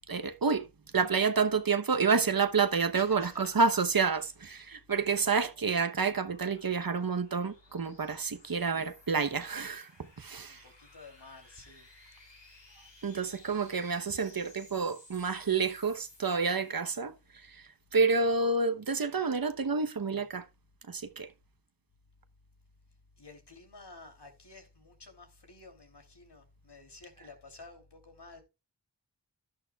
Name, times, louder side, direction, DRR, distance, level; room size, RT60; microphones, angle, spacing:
voice 1, 0.1-0.7 0.9-4.2 4.5-9.9 10.2-10.6 13.0-17.1 17.5-17.6 17.9-20.4 20.9-21.3, right 5 dB, 55° right, 1.0 m, -29 dB
voice 2, 2.9-3.6 4.2-4.3 4.9-5.0 10.5-11.9 23.2-28.4, left 3 dB, 70° left, 3.1 m, -51 dB
sound 1, 4.5-17.1, left 2 dB, 90° left, 6.6 m, -59 dB
11.5 x 11.0 x 2.3 m
wide cardioid pair, 45°, 43 cm